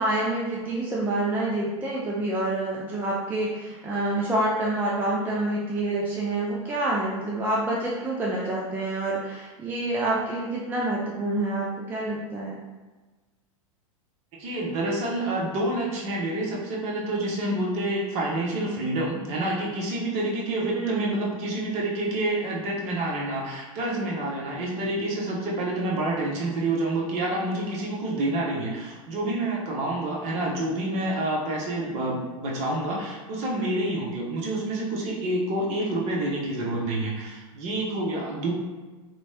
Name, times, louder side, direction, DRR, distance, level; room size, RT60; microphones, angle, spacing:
voice 1, 0.0-12.6 20.7-21.2, right 2 dB, 10° right, -5 dB, 0.4 m, -27 dB
voice 2, 14.4-38.5, right 1 dB, 40° right, -3 dB, 0.8 m, -28 dB
3.0 x 2.2 x 2.8 m, 1.3 s
hypercardioid pair, 95°, 18 cm